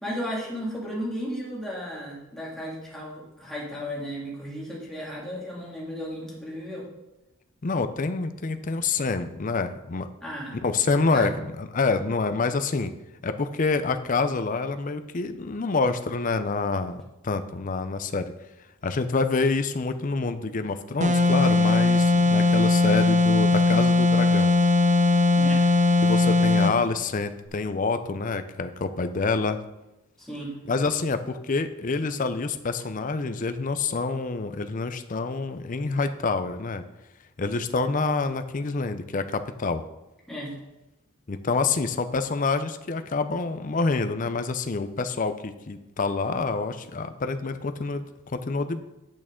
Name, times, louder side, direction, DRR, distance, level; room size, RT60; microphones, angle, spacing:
voice 1, 0.0-6.9 10.2-10.6 11.1-11.3 25.4-25.7 30.2-30.5 40.3-40.6, equal, ahead, -6 dB, 2.3 m, -34 dB
voice 2, 7.6-10.1 10.5-11.3 11.6-12.9 13.2-18.3 18.8-24.5 26.0-29.6 30.7-36.8 37.4-39.8 41.3-48.8, left 4 dB, 40° left, 9 dB, 0.5 m, -27 dB
sound 1, 21.0-26.8, left 3 dB, 35° right, 0.6 m, -19 dB
8.5 x 8.5 x 3.7 m, 0.97 s
head